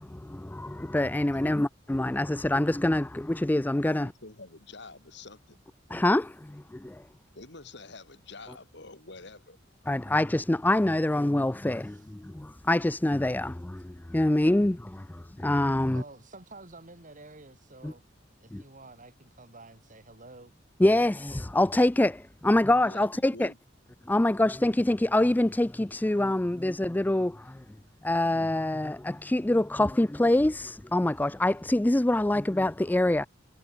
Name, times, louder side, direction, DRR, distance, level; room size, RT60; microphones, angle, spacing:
voice 1, 0.0-4.1 5.9-7.0 9.9-16.0 17.8-17.9 18.5-18.6 20.8-23.5 24.1-27.6 28.0-33.3, left 1 dB, 10° left, 0.4 m, -25 dB
voice 2, 1.3-1.7 3.9-5.6 7.3-9.6 22.8-23.6, left 3 dB, 65° left, 3.9 m, -47 dB
voice 3, 15.9-18.0 18.4-20.5, right 2 dB, 45° right, 5.2 m, -49 dB
head